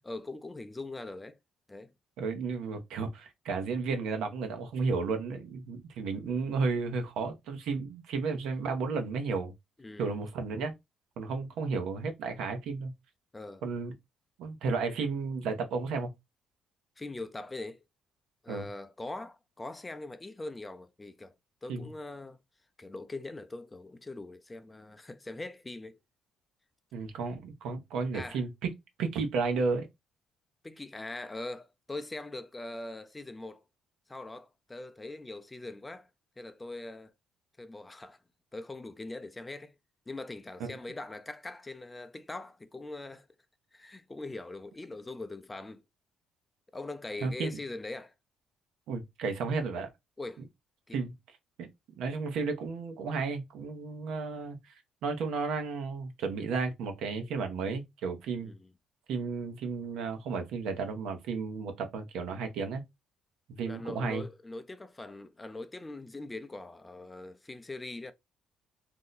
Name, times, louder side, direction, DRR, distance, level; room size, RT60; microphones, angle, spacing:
voice 1, 0.0-1.4 1.7-1.9 9.8-10.1 13.3-13.6 17.0-17.8 18.4-21.3 21.6-22.4 22.8-26.0 28.1-28.4 30.6-33.6 34.1-36.1 36.4-37.1 37.6-38.2 38.5-39.7 40.1-43.3 43.7-45.8 46.7-48.1 50.2-50.4 50.9-51.0 58.4-58.7 63.6-68.1, left 2 dB, 20° left, 0.4 m, -42 dB
voice 2, 2.2-9.5 10.0-10.7 11.2-12.9 13.6-13.9 14.4-16.1 18.5-18.7 21.7-21.9 26.9-28.7 29.0-29.9 40.6-40.8 47.2-47.6 48.9-49.9 50.9-51.1 51.6-51.7 52.0-54.7 55.0-58.5 59.1-62.8 63.5-64.2, right 4 dB, 80° right, 0.8 m, -33 dB
2.7 x 2.1 x 3.8 m
cardioid pair, 85°, 0 cm